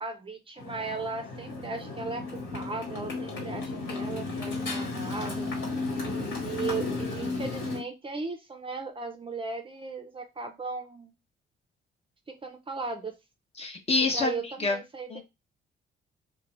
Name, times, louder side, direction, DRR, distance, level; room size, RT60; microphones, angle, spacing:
voice 1, 0.0-2.2 2.5-5.5 6.4-11.1 12.3-13.1 14.1-15.2, right 4 dB, 25° right, 6 dB, 0.5 m, -36 dB
Motorcycle, 0.6-7.8, left 3 dB, 75° left, 1.3 m, -34 dB
voice 2, 13.6-14.8 15.1-15.2, left 3 dB, 30° left, 4 dB, 0.7 m, -27 dB
2.3 x 2.1 x 3.2 m, 0.24 s
cardioid pair, 90°, 20 cm